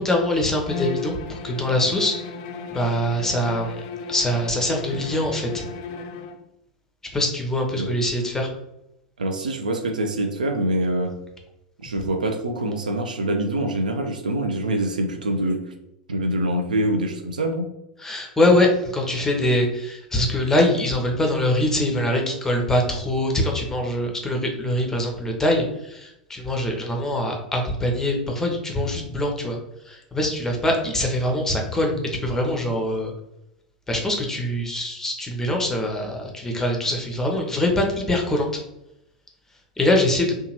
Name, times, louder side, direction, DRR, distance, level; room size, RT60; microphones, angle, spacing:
voice 1, 0.0-2.2 2.7-3.8 4.1-5.6 7.1-8.5 18.0-29.6 29.9-33.1 33.9-38.5 39.8-40.3, left 1 dB, 10° left, 1 dB, 0.6 m, -23 dB
Bowed string instrument, 0.6-6.4, left 5 dB, 50° left, 0.3 m, -35 dB
voice 2, 9.2-11.1 11.8-15.6 16.1-17.7, right 1 dB, 75° right, 5 dB, 0.4 m, -25 dB
2.7 x 2.2 x 2.9 m, 0.87 s
figure-of-eight pair, 85°, 4 cm